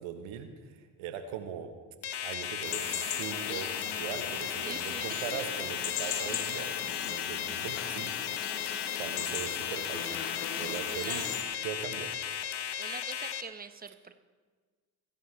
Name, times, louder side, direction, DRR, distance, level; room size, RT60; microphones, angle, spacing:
voice 1, 0.0-1.7 2.2-8.6 9.0-10.2 10.6-11.2 11.6-12.1, right 8 dB, 75° right, 8 dB, 1.3 m, -40 dB
sound 1, 2.0-13.4, left 9 dB, 55° left, 1.2 m, -36 dB
sound 2, 2.6-11.4, left 8 dB, 85° left, 1.3 m, -38 dB
voice 2, 4.6-5.4 6.3-6.5 8.4-8.9 10.9-11.3 12.8-14.1, right 5 dB, 20° right, 10 dB, 1.0 m, -44 dB
24.0 x 11.5 x 3.3 m, 1.5 s
hypercardioid pair, 45°, 48 cm